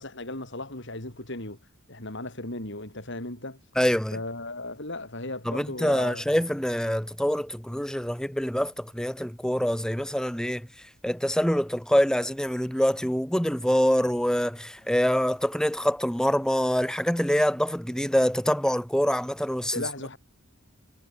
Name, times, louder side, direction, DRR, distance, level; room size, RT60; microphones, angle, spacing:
voice 1, 0.0-1.6 1.9-3.6 4.1-6.2 19.7-20.2, left 2 dB, 55° left, 5.1 m, -36 dB
voice 2, 3.8-4.2 5.5-10.7 11.0-19.8, equal, 5° left, 1.1 m, -25 dB
head